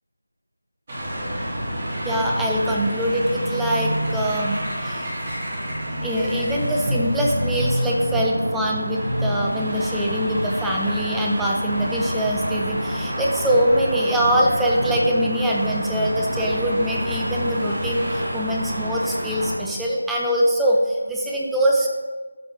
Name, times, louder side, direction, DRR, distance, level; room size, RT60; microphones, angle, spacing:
sound 1, 0.9-19.5, equal, 30° right, 2.0 m, -27 dB
voice 1, 2.0-5.1 6.0-21.9, equal, 5° right, -3 dB, 0.4 m, -23 dB
12.5 x 5.2 x 3.0 m, 1.3 s
figure-of-eight pair, 165°, 0 cm